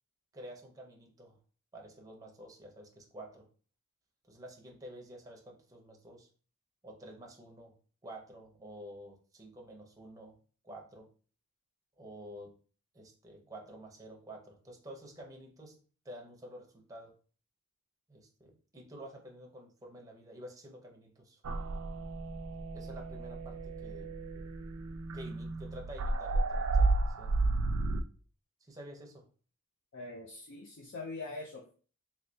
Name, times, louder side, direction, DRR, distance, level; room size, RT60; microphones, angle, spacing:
voice 1, 0.3-1.4 1.7-3.5 4.3-6.3 6.8-7.7 8.0-10.3 10.6-11.1 12.0-12.5 12.9-17.1 18.1-21.4 22.7-24.1 25.1-27.3 28.6-29.2, right 1 dB, 15° right, 0 dB, 0.6 m, -50 dB
sound 1, 21.4-28.0, right 2 dB, 65° right, 0.4 m, -32 dB
voice 2, 29.9-31.7, left 3 dB, 55° left, 0 dB, 0.4 m, -43 dB
3.2 x 2.7 x 2.7 m, 0.40 s
head